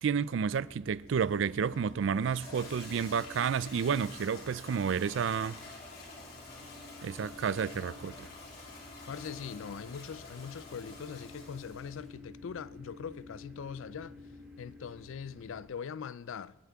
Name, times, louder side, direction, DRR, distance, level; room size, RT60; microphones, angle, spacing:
voice 1, 0.0-5.6 7.0-8.3, right 6 dB, 60° right, 0.4 m, -31 dB
sound 1, 0.6-15.7, left 2 dB, 10° right, 2.9 m, -52 dB
Toilet flush, 1.1-12.1, left 3 dB, 50° left, 2.8 m, -49 dB
voice 2, 9.1-14.2 14.6-16.6, left 7 dB, 70° left, 0.4 m, -42 dB
28.0 x 9.4 x 3.5 m
head